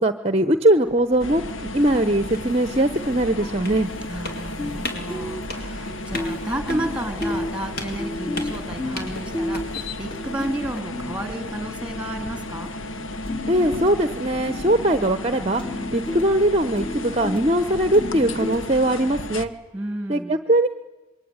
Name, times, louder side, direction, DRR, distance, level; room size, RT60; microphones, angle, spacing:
voice 1, 0.0-3.9 13.5-19.5 20.1-20.7, right 1 dB, 30° right, 11 dB, 0.9 m, -21 dB
sound 1, 0.9-10.8, left 1 dB, 45° left, 4.4 m, -38 dB
sound 2, 1.2-19.5, left 1 dB, 70° left, 1.4 m, -34 dB
sound 3, 2.1-4.2 4.6-4.8 5.1-12.7 13.0-19.1, left 1 dB, 25° left, 2.9 m, -33 dB
voice 2, 4.1-9.6 10.0-12.7 19.7-20.4, right 1 dB, 5° right, 7 dB, 2.7 m, -32 dB
26.5 x 23.0 x 9.7 m, 1.1 s
head